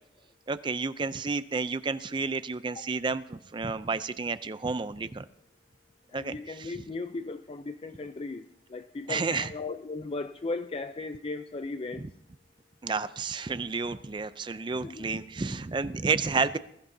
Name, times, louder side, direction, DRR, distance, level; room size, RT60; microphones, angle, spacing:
voice 1, 0.5-5.3 6.1-6.7 9.1-9.5 12.0-12.1 12.8-16.6, right 4 dB, 25° right, 0.4 m, -31 dB
voice 2, 6.1-12.1 14.8-15.1, left 3 dB, 30° left, 0.4 m, -36 dB
21.5 x 14.0 x 2.7 m
head